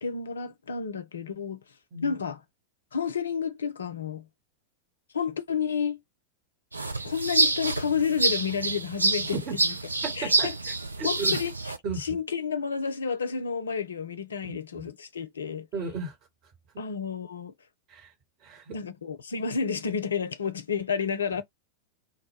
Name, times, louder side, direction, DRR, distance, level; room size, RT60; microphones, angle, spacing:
voice 1, 0.0-1.6 2.0-2.4 2.9-4.3 5.1-6.0 7.0-9.4 9.6-9.7 10.2-10.5 11.0-11.5 12.0-15.7 16.8-17.5 18.7-21.4, left 6 dB, 70° left, 0.4 m, -30 dB
sound 1, 6.7-11.8, right 3 dB, 80° right, 0.3 m, -27 dB
voice 2, 10.0-10.5 11.0-11.4 11.8-12.1 14.5-14.8 15.7-16.1 17.9-18.1 18.4-18.8, right 3 dB, 35° right, 1.0 m, -34 dB
2.1 x 2.1 x 3.2 m
figure-of-eight pair, 90°, 0 cm